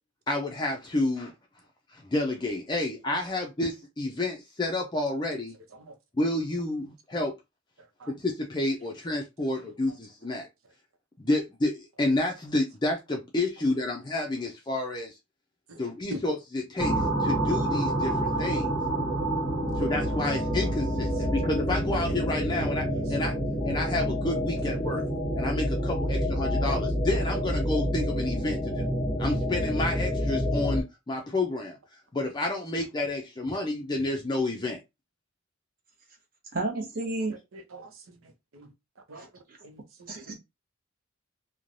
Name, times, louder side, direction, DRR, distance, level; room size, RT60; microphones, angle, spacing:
voice 1, 0.3-1.3 1.9-5.5 6.1-7.3 8.1-10.5 11.2-15.2 15.8-18.7 19.8-23.3 23.6-25.0 25.3-28.9 29.2-31.8 32.1-34.8, left 2 dB, 20° left, 0.4 m, -30 dB
sound 1, 16.8-30.8, equal, 5° right, 1.1 m, -28 dB
voice 2, 36.5-37.3 40.1-40.3, right 2 dB, 45° right, 0.9 m, -30 dB
voice 3, 37.5-38.2 39.1-39.3 39.6-40.3, equal, 80° right, 0.7 m, -43 dB
3.1 x 2.2 x 2.5 m
head